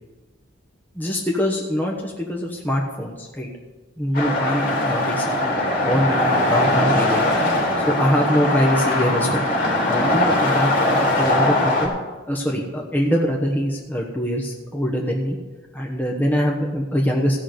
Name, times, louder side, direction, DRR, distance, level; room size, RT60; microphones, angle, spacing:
voice 1, 0.9-3.5 4.0-7.2 7.9-9.4 9.9-11.9 12.3-15.4 15.7-17.4, equal, 10° left, -1 dB, 1.2 m, -23 dB
sound 1, 4.1-11.9, left 1 dB, 50° left, 3.3 m, -20 dB
15.5 x 6.1 x 7.8 m, 1.3 s
head